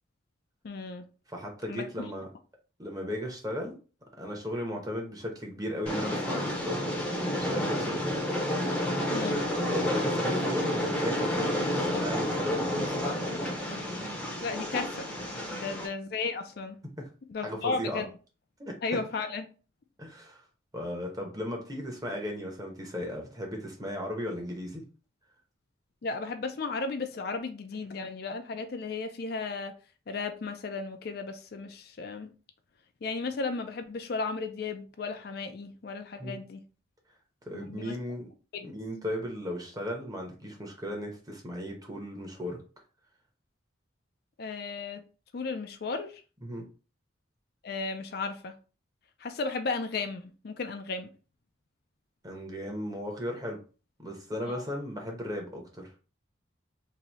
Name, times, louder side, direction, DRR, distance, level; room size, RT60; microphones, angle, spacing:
voice 1, 0.6-1.0 1.7-2.1 9.1-9.4 14.4-15.1 15.5-16.8 17.3-18.1 18.8-19.4 26.0-29.8 30.1-32.3 33.0-36.6 37.5-38.0 38.5-38.7 44.4-45.0 45.3-46.2 47.6-48.6 49.2-51.1 54.5-54.6, left 4 dB, 50° left, 0.4 m, -34 dB
voice 2, 1.3-2.3 2.8-3.8 4.2-6.9 7.3-8.2 9.7-13.0 15.5-15.7 17.0-17.1 17.4-18.0 18.6-19.0 20.0-20.4 20.7-24.8 36.2-36.4 37.5-38.3 38.6-42.6 46.4-46.6 52.2-53.6 54.0-55.9, equal, 20° right, 0.9 m, -36 dB
Train, 5.9-15.9, left 1 dB, 5° left, 0.7 m, -30 dB
3.0 x 2.7 x 4.0 m
head